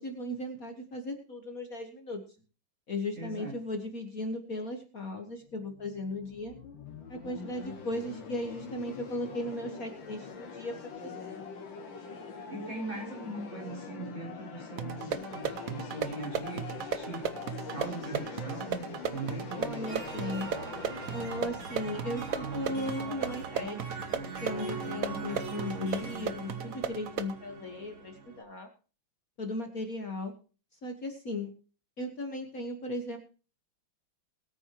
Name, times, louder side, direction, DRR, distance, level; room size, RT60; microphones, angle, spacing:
voice 1, 0.0-2.2 2.9-6.5 7.1-10.7 11.0-11.4 19.6-20.5 21.1-23.9 24.4-28.7 29.4-30.3 30.8-31.5 32.0-33.2, left 1 dB, 45° left, 4 dB, 1.8 m, -37 dB
voice 2, 3.2-3.5 12.5-16.6 16.9-17.4 17.7-19.9, right 2 dB, 40° right, -3 dB, 6.6 m, -40 dB
sound 1, 5.4-23.3, left 5 dB, 65° left, 2.5 m, -44 dB
sound 2, 14.8-27.4, right 7 dB, 60° right, 0.9 m, -36 dB
sound 3, 19.9-28.4, right 3 dB, 75° right, 3.5 m, -40 dB
22.0 x 9.0 x 3.0 m, 0.36 s
omnidirectional pair, 2.2 m